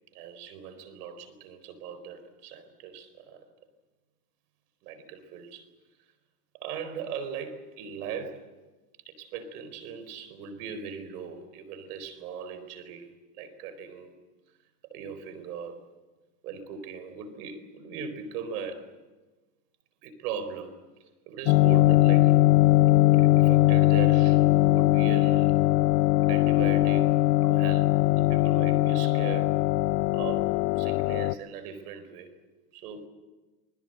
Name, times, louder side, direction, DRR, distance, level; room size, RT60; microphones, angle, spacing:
voice 1, 0.1-3.4 4.8-5.7 6.6-8.5 9.1-14.1 14.9-15.8 16.4-18.9 20.0-22.4 23.1-25.6 26.3-29.6 30.1-32.3 32.7-33.1, right 6 dB, 80° right, 12 dB, 4.5 m, -39 dB
sound 1, 21.5-31.3, left 17 dB, 80° left, 0.8 m, -21 dB
28.0 x 21.0 x 7.9 m, 1.2 s
supercardioid pair, 110°, 46 cm